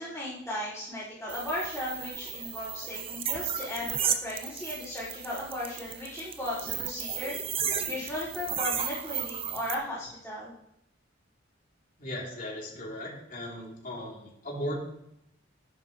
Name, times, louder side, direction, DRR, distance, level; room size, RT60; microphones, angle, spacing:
voice 1, 0.0-10.5, left 1 dB, 5° left, -17 dB, 5.5 m, -36 dB
sound 1, 1.3-9.7, right 8 dB, 30° right, 0.7 m, -34 dB
voice 2, 12.0-14.7, equal, 45° left, -4 dB, 3.4 m, -37 dB
13.5 x 10.5 x 3.3 m, 0.80 s
head